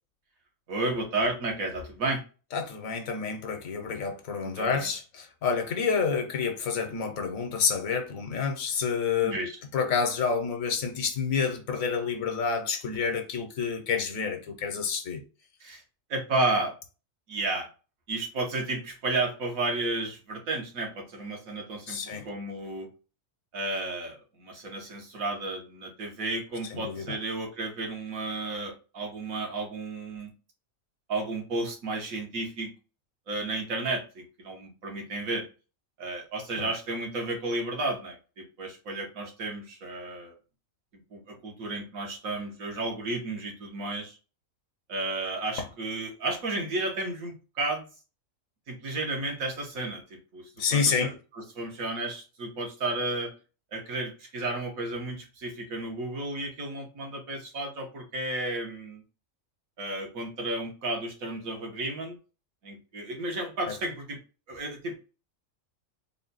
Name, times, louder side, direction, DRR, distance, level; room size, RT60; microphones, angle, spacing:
voice 1, 0.7-2.2 4.4-4.9 9.2-9.5 15.6-15.8 16.1-16.7 17.3-17.7 18.1-22.9 23.5-30.3 31.1-32.7 33.3-35.5 36.0-40.3 41.1-44.2 44.9-47.9 48.7-53.3 53.7-59.0 59.8-62.1 62.6-64.2 64.5-65.0, right 2 dB, 85° right, 1.6 m, -32 dB
voice 2, 2.5-9.4 9.7-15.2 21.9-22.3 26.7-27.1 36.6-36.7 50.6-51.1, left 5 dB, 75° left, 1.2 m, -29 dB
3.8 x 2.2 x 3.9 m
omnidirectional pair, 1.4 m